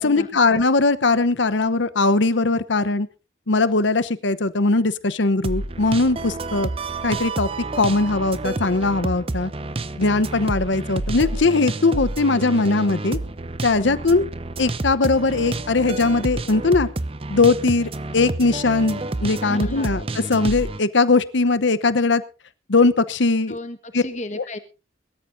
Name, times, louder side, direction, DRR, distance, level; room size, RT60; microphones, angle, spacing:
voice 1, 0.0-3.1 3.5-6.7 7.0-7.5 7.8-9.5 10.0-13.2 13.6-14.3 14.6-16.9 17.3-22.2 22.7-23.6 23.9-24.0, left 3 dB, 75° left, 15 dB, 0.9 m, -20 dB
sound 1, 5.4-20.8, right 2 dB, 30° right, 0.6 m, -29 dB
voice 2, 19.4-20.0 23.5-24.6, left 1 dB, 40° left, 10 dB, 1.4 m, -34 dB
22.0 x 13.0 x 2.6 m, 0.32 s
head